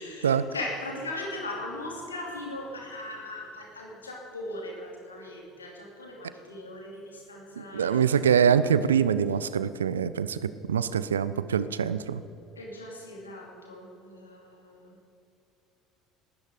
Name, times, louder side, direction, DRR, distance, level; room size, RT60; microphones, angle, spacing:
voice 1, 0.0-8.9 12.6-15.0, left 2 dB, 85° left, -1 dB, 2.7 m, -39 dB
voice 2, 7.6-12.2, right 7 dB, 80° right, 15 dB, 0.4 m, -24 dB
18.5 x 13.0 x 5.1 m, 2.7 s
figure-of-eight pair, 60°, 0 cm